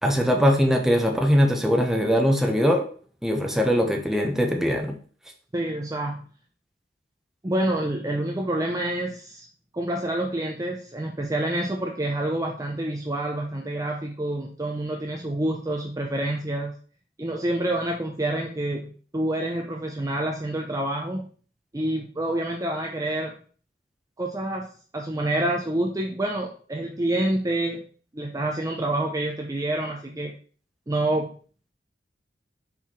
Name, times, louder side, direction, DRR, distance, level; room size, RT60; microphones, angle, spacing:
voice 1, 0.0-2.8 3.2-5.0, equal, ahead, 2 dB, 1.1 m, -21 dB
voice 2, 5.5-6.3 7.4-9.5 9.7-16.8 17.2-21.3 21.7-23.3 24.2-24.7 24.9-27.8 28.1-30.3 30.9-31.3, right 1 dB, 20° right, 1 dB, 0.7 m, -27 dB
5.3 x 4.7 x 4.5 m, 0.42 s
head